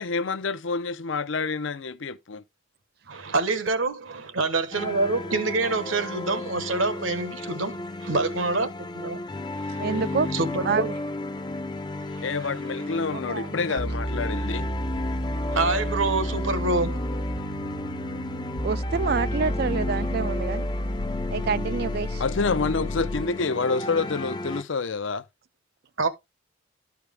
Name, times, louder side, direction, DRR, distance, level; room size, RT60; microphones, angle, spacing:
voice 1, 0.0-2.4 12.2-14.7 21.4-21.5 22.2-25.2, left 4 dB, 65° left, 0.6 m, -28 dB
voice 2, 3.1-8.7 9.0-9.2 9.6-9.9 10.3-10.9 12.1-12.2 15.5-17.1 26.0-26.1, right 3 dB, 75° right, 1.2 m, -26 dB
sound 1, 4.7-24.6, left 2 dB, 20° left, 0.5 m, -34 dB
voice 3, 9.8-10.3 10.7-10.9 13.1-13.8 18.6-20.7 21.3-22.2, right 5 dB, 50° right, 0.4 m, -28 dB
sound 2, 13.8-23.4, equal, 90° left, 1.3 m, -31 dB
12.0 x 4.7 x 3.4 m
head